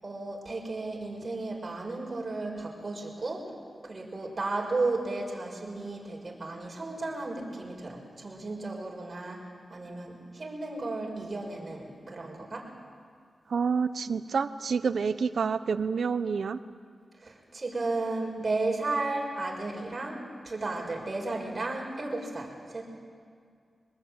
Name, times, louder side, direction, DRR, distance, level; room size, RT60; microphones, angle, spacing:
voice 1, 0.0-3.5 3.8-12.7 17.2-22.8, right 2 dB, 40° right, 0 dB, 5.8 m, -34 dB
voice 2, 13.5-16.6, right 5 dB, 75° right, 12 dB, 0.9 m, -28 dB
24.5 x 20.5 x 9.1 m, 2.2 s
wide cardioid pair, 80°, 0 cm